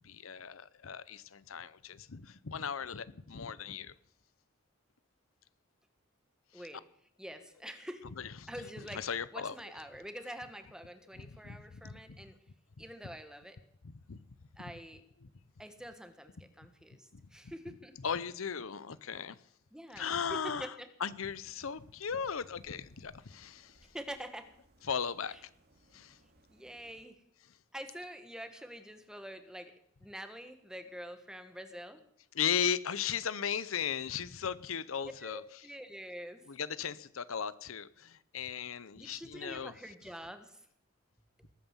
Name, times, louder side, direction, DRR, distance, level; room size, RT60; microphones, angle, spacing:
voice 1, 0.0-3.9 6.5-6.6 8.2-8.5 8.9-9.6 11.2-12.2 13.8-14.2 15.2-15.3 17.1-17.2 18.0-19.4 20.0-23.8 24.8-25.4 25.9-26.2 32.3-35.4 36.5-39.7, left 7 dB, 80° left, 17 dB, 0.7 m, -37 dB
voice 2, 7.2-8.0 8.5-9.0 9.3-12.4 12.8-13.6 14.6-15.0 15.6-17.9 19.7-20.9 23.9-24.5 25.3-25.4 26.5-27.2 27.7-29.7 30.0-32.0 35.0-36.4 38.9-40.6 41.4-41.5, equal, 5° right, 9 dB, 1.4 m, -46 dB
sound 1, 21.2-27.1, right 1 dB, 50° right, 2.5 m, -66 dB
20.0 x 9.2 x 7.3 m, 0.70 s
head